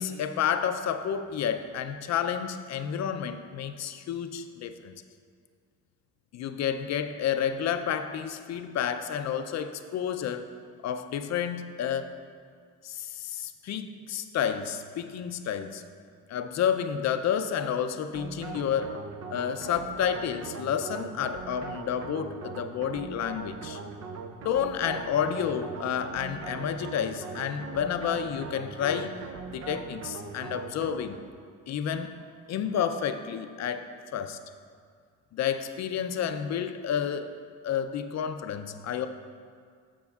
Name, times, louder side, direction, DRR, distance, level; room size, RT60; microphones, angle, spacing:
voice 1, 0.0-4.9 6.3-10.5 10.8-12.1 12.8-15.8 16.3-19.0 19.3-23.8 24.4-29.2 29.5-31.2 31.7-32.2 32.5-33.9 34.1-34.4 35.3-37.3 37.6-39.1, left 8 dB, 60° left, 9 dB, 0.5 m, -30 dB
sound 1, 18.1-31.3, right 5 dB, 55° right, 0.6 m, -40 dB
14.5 x 5.3 x 2.4 m, 2.1 s
cardioid pair, 90°, 30 cm